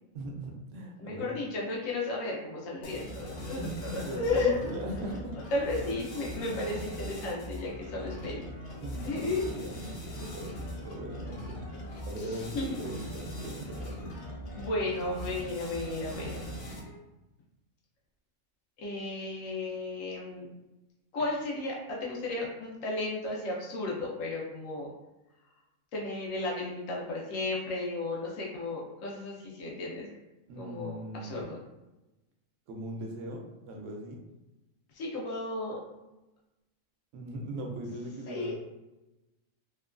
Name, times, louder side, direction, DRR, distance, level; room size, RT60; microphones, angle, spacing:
voice 1, 0.1-1.4 3.6-5.4 6.4-6.6 8.8-11.6 12.1-14.2 30.5-31.5 32.7-34.2 37.1-38.5, right 1 dB, 75° right, 1 dB, 0.9 m, -39 dB
voice 2, 1.0-4.5 5.5-8.5 9.0-9.4 12.3-12.7 14.5-16.4 18.8-20.5 21.1-24.9 25.9-30.1 30.6-31.6 34.9-35.8 38.3-38.5, left 2 dB, 90° left, -3 dB, 1.1 m, -34 dB
sound 1, 2.8-17.0, equal, 60° left, 0.8 m, -41 dB
2.9 x 2.2 x 2.4 m, 1.0 s
omnidirectional pair, 1.3 m